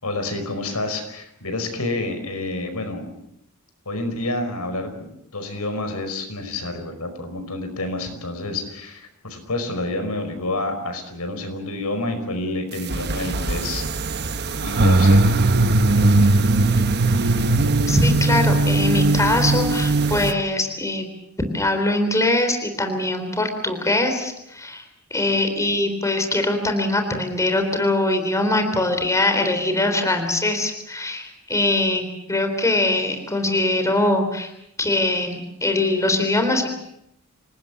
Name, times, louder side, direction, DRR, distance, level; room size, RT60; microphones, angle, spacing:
voice 1, 0.0-3.1 3.9-14.2 14.6-15.2, left 2 dB, 85° left, 8 dB, 5.2 m, -29 dB
sound 1, 12.9-20.3, right 2 dB, 50° right, 1.1 m, -19 dB
voice 2, 17.9-21.1 21.5-24.8 25.1-34.5 34.8-36.7, left 2 dB, 15° left, 5 dB, 3.7 m, -22 dB
27.5 x 19.0 x 7.3 m, 0.77 s
head